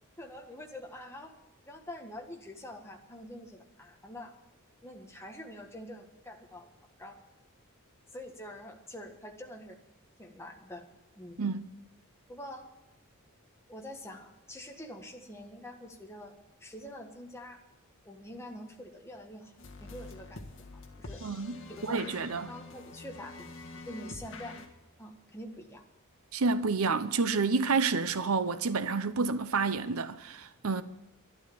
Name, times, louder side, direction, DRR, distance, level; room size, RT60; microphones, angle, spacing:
voice 1, 0.2-1.3 1.6-4.4 4.8-6.7 7.0-7.2 8.1-9.8 10.2-10.9 11.1-11.4 12.3-12.7 13.7-16.3 16.6-17.6 18.0-19.5 19.8-20.4 20.7-21.3 21.7-22.2 22.5-24.6 25.0-25.8, left 1 dB, 10° left, 1.6 m, -45 dB
sound 1, 19.6-24.7, left 3 dB, 60° left, 1.6 m, -46 dB
voice 2, 21.2-22.5 26.3-30.8, right 4 dB, 75° right, 0.8 m, -29 dB
12.0 x 11.5 x 8.5 m
head